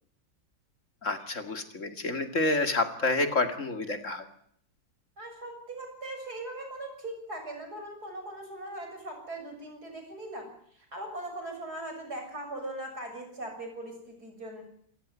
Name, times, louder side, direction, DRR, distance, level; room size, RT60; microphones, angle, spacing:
voice 1, 1.0-4.3, left 2 dB, 40° left, 7 dB, 2.5 m, -29 dB
voice 2, 5.2-14.6, right 1 dB, 55° right, 4 dB, 7.5 m, -40 dB
28.0 x 15.0 x 9.5 m, 0.67 s
omnidirectional pair, 2.0 m